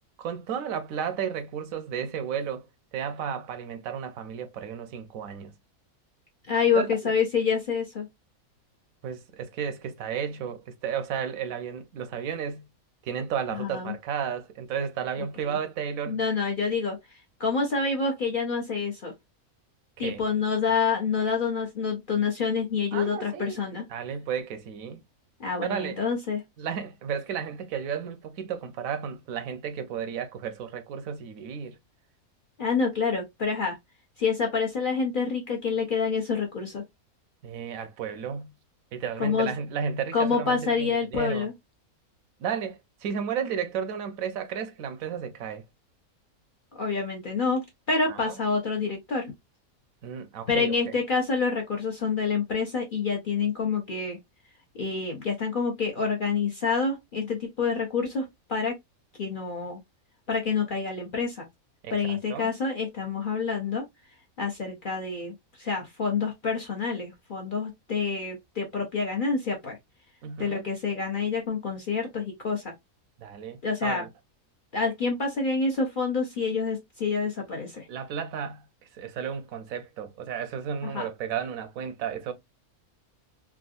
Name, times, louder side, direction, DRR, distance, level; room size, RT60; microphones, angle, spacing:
voice 1, 0.2-2.7 2.9-5.5 6.7-7.1 9.0-12.6 13.0-16.2 20.0-20.2 22.9-23.6 23.9-25.0 25.7-26.0 26.6-31.7 37.4-38.5 38.9-41.5 42.4-45.6 48.1-48.4 50.0-50.7 61.8-62.5 70.2-70.6 73.2-74.1 77.9-78.6 78.9-82.3, right 7 dB, 75° right, 1.0 m, -33 dB
voice 2, 6.5-8.1 13.5-13.9 15.4-15.6 16.1-17.0 17.4-19.1 20.0-23.8 25.4-26.4 32.6-33.8 34.2-36.8 39.2-39.5 40.1-41.5 46.7-49.3 50.5-54.2 54.8-58.8 59.2-59.8 60.3-61.4 61.9-63.8 64.4-69.8 70.4-72.7 73.6-74.0 74.7-77.9 80.8-81.1, left 5 dB, 50° left, 0.6 m, -27 dB
3.5 x 2.3 x 2.3 m
omnidirectional pair, 1.5 m